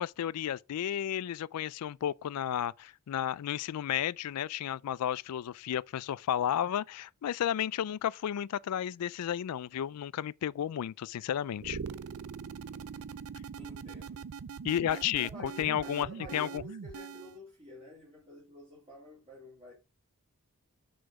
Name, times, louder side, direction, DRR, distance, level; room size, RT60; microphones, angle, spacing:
voice 1, 0.0-11.8 14.6-16.1 16.3-16.6, left 10 dB, 90° left, 0.3 m, -32 dB
sound 1, 11.6-17.4, right 6 dB, 70° right, 0.4 m, -42 dB
voice 2, 13.6-14.3 14.9-19.7, left 1 dB, 25° right, 2.7 m, -49 dB
6.3 x 4.7 x 4.9 m
head